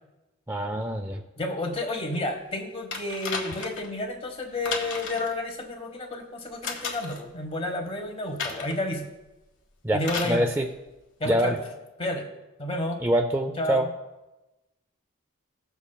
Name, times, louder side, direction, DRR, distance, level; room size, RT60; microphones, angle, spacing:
voice 1, 0.5-1.2 9.8-10.7 11.2-11.6 13.0-13.9, right 1 dB, 10° right, 5 dB, 0.4 m, -25 dB
voice 2, 1.4-9.1 9.9-10.5 11.2-11.6 12.0-12.3 12.6-13.0 13.6-13.9, left 1 dB, 25° left, 3 dB, 1.2 m, -31 dB
sound 1, 2.9-3.9 4.6-5.3 6.6-7.2 8.4-8.8 10.0-10.4 11.4-11.5, left 4 dB, 60° left, 1.6 m, -33 dB
17.0 x 7.1 x 2.3 m, 1.1 s
head